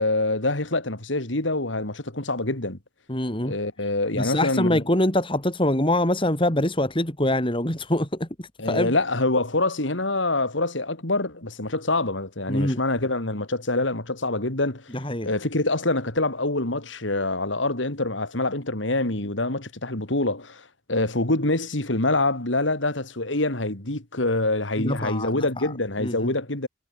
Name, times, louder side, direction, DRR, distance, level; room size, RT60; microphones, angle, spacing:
voice 1, 0.0-2.8 3.4-4.8 8.6-14.9 15.2-26.7, left 2 dB, 80° left, 3.5 m, -25 dB
voice 2, 3.1-3.6 4.1-8.9 12.5-12.8 14.9-15.3 24.8-25.7 26.0-26.3, left 1 dB, 25° left, 4.8 m, -24 dB
head